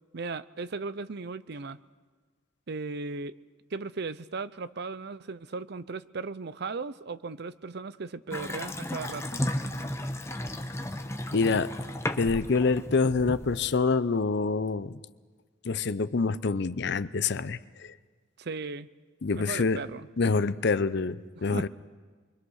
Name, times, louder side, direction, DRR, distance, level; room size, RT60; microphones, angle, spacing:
voice 1, 0.1-1.8 2.7-3.4 3.7-9.4 18.4-18.9 19.3-20.1 21.5-21.7, right 4 dB, 55° right, 15 dB, 0.6 m, -36 dB
Water tap faucet / Sink (filling or washing) / Bathtub (filling or washing), 8.3-13.8, left 1 dB, 15° left, 0.9 m, -34 dB
voice 2, 11.3-11.7 12.2-15.0 15.6-17.9 19.2-19.8 20.2-21.7, left 4 dB, 60° left, 15 dB, 0.6 m, -26 dB
26.5 x 23.5 x 6.5 m, 1.4 s
head